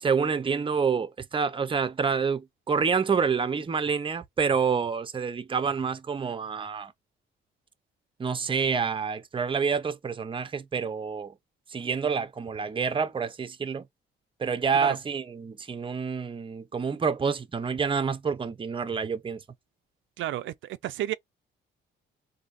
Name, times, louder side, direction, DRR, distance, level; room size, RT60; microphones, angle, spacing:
voice 1, 0.0-6.9 8.2-11.3 11.7-13.8 14.4-19.4, right 6 dB, 25° right, 0.6 m, -28 dB
voice 2, 20.2-21.1, right 13 dB, 75° right, 0.5 m, -31 dB
4.0 x 2.7 x 2.5 m
cardioid pair, 90°, 20 cm